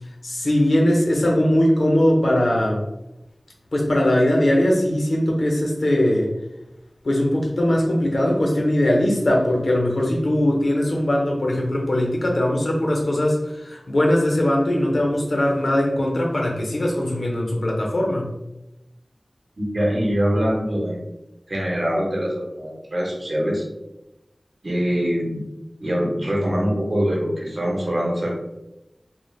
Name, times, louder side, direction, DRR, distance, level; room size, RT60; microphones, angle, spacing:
voice 1, 0.2-2.8 3.7-6.3 7.0-18.3, left 1 dB, 85° left, -1 dB, 0.6 m, -20 dB
voice 2, 19.6-21.0 21.5-23.6 24.6-25.4 25.8-28.4, equal, 60° right, -3 dB, 0.8 m, -23 dB
3.1 x 2.0 x 2.3 m, 0.93 s
wide cardioid pair, 65°, 0 cm